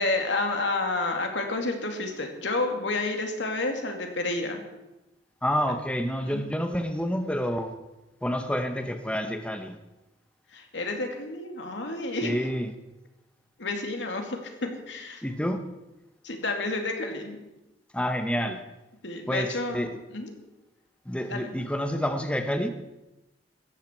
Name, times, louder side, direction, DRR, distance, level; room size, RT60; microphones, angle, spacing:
voice 1, 0.0-4.6 6.2-6.5 10.5-12.5 13.6-15.2 16.2-17.4 19.0-20.4 21.3-21.6, left 2 dB, 85° left, 3 dB, 2.5 m, -30 dB
voice 2, 5.4-7.7 8.2-9.8 12.2-12.7 15.2-15.6 17.9-18.6 19.3-19.9 21.1-22.7, equal, 5° left, 7 dB, 1.0 m, -28 dB
17.0 x 13.5 x 4.5 m, 0.99 s
head